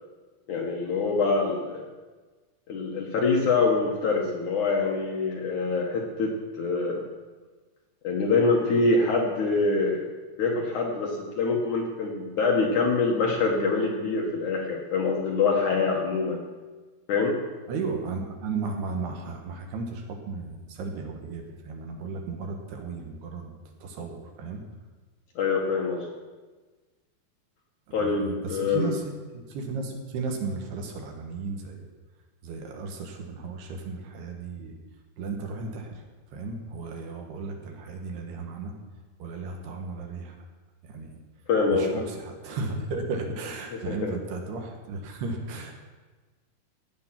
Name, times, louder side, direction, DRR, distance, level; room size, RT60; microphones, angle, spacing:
voice 1, 0.5-1.9 2.7-7.1 8.0-10.1 10.4-16.4 17.1-17.4 25.4-26.1 27.9-28.9 41.5-42.0 43.9-44.1, left 4 dB, 60° left, -1 dB, 2.2 m, -25 dB
voice 2, 17.7-23.5 23.8-24.6 27.9-31.9 32.4-34.8 35.2-36.0 36.3-38.7 39.2-40.4 40.8-41.2 41.7-45.7, right 4 dB, 70° right, 2 dB, 3.4 m, -35 dB
16.5 x 8.8 x 5.9 m, 1.3 s
omnidirectional pair, 5.0 m